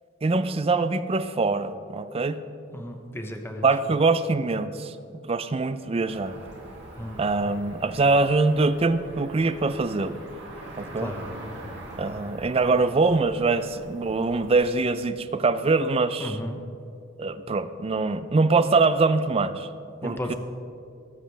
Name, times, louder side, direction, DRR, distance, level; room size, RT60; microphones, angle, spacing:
voice 1, 0.2-2.4 3.6-4.9 5.3-6.4 7.2-10.2 10.8-11.1 12.0-16.4 17.2-19.7 20.0-20.3, right 3 dB, 30° right, 12 dB, 0.4 m, -23 dB
voice 2, 2.7-4.0 7.0-7.2 11.0-11.2 16.2-16.6 20.0-20.3, left 1 dB, 10° left, 4 dB, 0.8 m, -34 dB
Cricket / Motor vehicle (road), 6.0-14.8, right 1 dB, 60° right, 2.4 m, -43 dB
20.5 x 7.3 x 3.4 m, 2.5 s
head